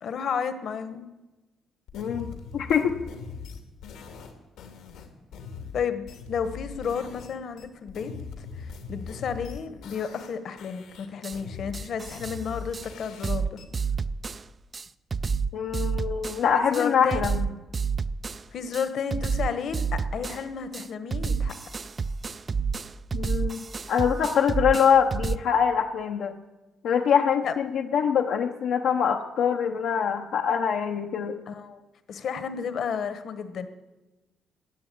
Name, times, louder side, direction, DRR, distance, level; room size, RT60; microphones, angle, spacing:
voice 1, 0.0-1.0 5.7-8.1 8.4-13.6 16.7-17.4 18.5-21.5 27.4-27.5 31.5-31.8 32.1-33.7, left 6 dB, 55° left, 11 dB, 1.3 m, -32 dB
sound 1, 1.9-7.3 7.6-10.3 10.6-13.6, left 5 dB, 90° left, 2.5 m, -41 dB
voice 2, 1.9-2.3 2.5-2.9 15.5-17.5 23.1-26.3 26.8-31.4, left 7 dB, 75° left, 2 dB, 0.9 m, -24 dB
sound 2, 11.2-11.4 11.7-12.4 12.7-12.9 13.2-14.4 14.7-14.9 15.1-16.4 16.7-18.4 18.7-18.9 19.1-20.4 20.7-25.4, right 5 dB, 30° right, 0.4 m, -29 dB
16.0 x 10.0 x 8.6 m, 1.1 s
cardioid pair, 135°, 0 cm